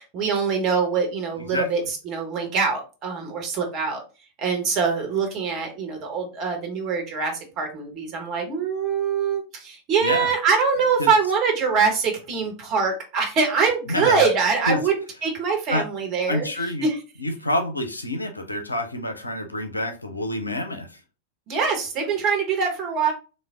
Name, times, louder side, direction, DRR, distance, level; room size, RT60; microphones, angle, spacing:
voice 1, 0.0-4.0 4.4-16.5 16.8-17.0 21.5-23.1, right 5 dB, 35° right, 1.1 m, -24 dB
voice 2, 13.9-14.2 14.7-14.8 15.7-15.8 16.3-16.9 17.2-21.0, left 1 dB, 80° left, 0.5 m, -27 dB
3.2 x 2.1 x 3.5 m
figure-of-eight pair, 90°, 0 cm